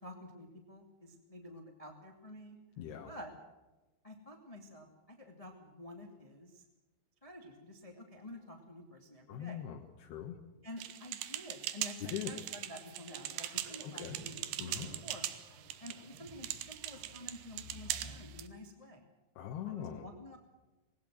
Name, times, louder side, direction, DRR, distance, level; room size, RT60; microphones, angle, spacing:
voice 1, 0.0-2.6 3.0-3.3 4.0-6.6 7.2-9.6 10.6-14.8 15.0-15.3 15.8-19.0 19.6-20.4, left 1 dB, 15° left, 3 dB, 1.6 m, -50 dB
voice 2, 2.8-3.1 9.3-10.4 12.0-12.3 13.8-14.2 14.6-14.9 19.4-20.1, left 9 dB, 85° left, 1 dB, 3.4 m, -41 dB
sound 1, 10.8-18.5, right 13 dB, 85° right, 3.1 m, -41 dB
sound 2, 11.2-11.3 11.6-11.7 12.0-12.1 12.4-18.2, right 1 dB, 65° right, 7.8 m, -54 dB
21.0 x 18.5 x 7.7 m, 1.1 s
omnidirectional pair, 4.5 m